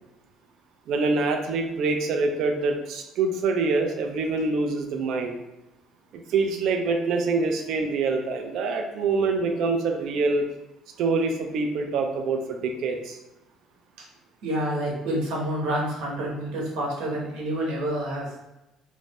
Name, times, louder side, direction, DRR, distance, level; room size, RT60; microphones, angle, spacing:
voice 1, 0.9-5.3 6.1-10.4 11.0-13.2, right 3 dB, 55° right, 4 dB, 0.4 m, -25 dB
voice 2, 14.4-18.3, right 1 dB, 90° right, -3 dB, 0.9 m, -28 dB
2.5 x 2.0 x 3.4 m, 0.94 s
cardioid pair, 175°, 0 cm